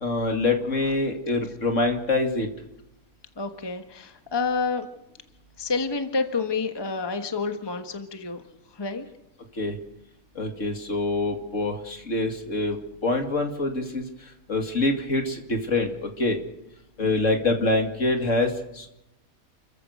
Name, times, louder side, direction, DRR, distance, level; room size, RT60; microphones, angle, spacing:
voice 1, 0.0-2.5 9.6-9.7 10.4-12.8 13.0-14.0 14.5-16.4 17.0-18.9, left 2 dB, 55° left, 4 dB, 2.7 m, -25 dB
voice 2, 3.4-4.9 5.6-8.4 8.7-9.0 17.0-17.2, left 4 dB, 20° left, 6 dB, 1.3 m, -29 dB
30.0 x 14.5 x 6.6 m, 0.88 s
omnidirectional pair, 1.5 m